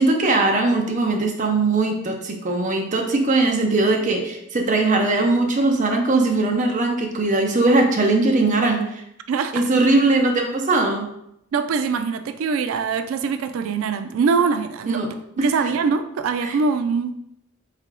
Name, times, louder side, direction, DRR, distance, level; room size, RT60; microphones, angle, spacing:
voice 1, 0.0-9.0 9.5-11.1 14.9-15.1 15.4-15.5 16.4-16.5, right 2 dB, 35° right, 2 dB, 0.6 m, -20 dB
voice 2, 9.3-9.6 10.5-10.6 11.5-15.0 15.4-17.1, right 5 dB, 80° right, 9 dB, 0.3 m, -23 dB
3.7 x 3.3 x 3.7 m, 0.77 s
head